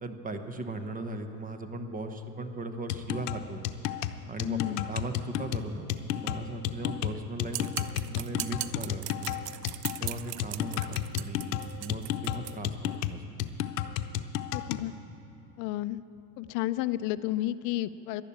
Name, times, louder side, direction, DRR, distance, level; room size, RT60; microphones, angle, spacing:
voice 1, 0.0-3.6 4.3-9.4 10.0-13.2, right 2 dB, 15° right, 7 dB, 1.0 m, -38 dB
sound 1, 2.9-14.9, left 11 dB, 75° left, 0.8 m, -33 dB
voice 2, 4.4-4.9 14.5-14.9 15.6-16.0 16.4-18.2, left 15 dB, 45° left, 16 dB, 0.5 m, -31 dB
sound 2, 7.5-12.6, right 16 dB, 80° right, 0.7 m, -38 dB
11.5 x 11.5 x 8.6 m, 2.8 s
supercardioid pair, 115°, 47 cm